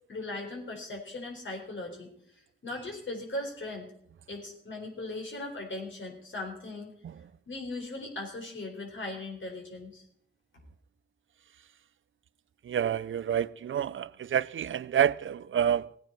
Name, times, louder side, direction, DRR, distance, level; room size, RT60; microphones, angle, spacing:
voice 1, 0.1-2.1 2.6-3.9 4.3-6.9 7.5-10.0, left 2 dB, 65° left, 4.2 m, -38 dB
voice 2, 12.6-16.0, right 9 dB, 70° right, 0.5 m, -28 dB
18.5 x 9.2 x 4.5 m
wide cardioid pair, 70°, 21 cm